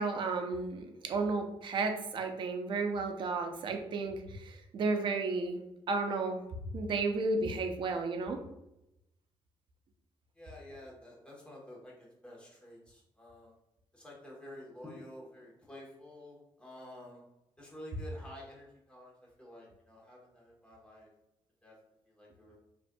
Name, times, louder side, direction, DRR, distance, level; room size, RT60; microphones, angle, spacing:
voice 1, 0.0-5.6 5.9-6.4 6.7-8.4, right 3 dB, 50° right, 4 dB, 0.6 m, -33 dB
voice 2, 10.4-13.5 13.9-17.2 17.6-19.1 19.4-21.1 21.6-21.7 22.1-22.5, left 1 dB, 10° left, -4 dB, 1.2 m, -50 dB
5.1 x 2.6 x 2.3 m, 0.87 s
cardioid pair, 140°, 10 cm